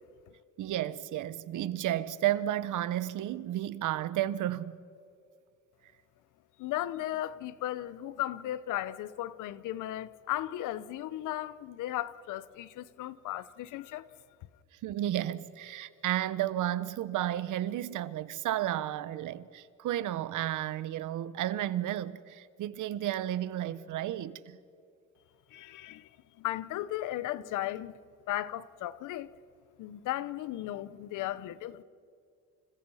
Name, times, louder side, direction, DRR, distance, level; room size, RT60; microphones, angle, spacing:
voice 1, 0.6-4.8 14.8-24.6, right 12 dB, 80° right, 1.1 m, -32 dB
voice 2, 6.6-14.1 25.5-26.1 26.4-27.9 28.3-29.3 29.8-31.8, left 14 dB, 90° left, 1.0 m, -36 dB
29.5 x 29.0 x 5.7 m
cardioid pair, 90°, 30 cm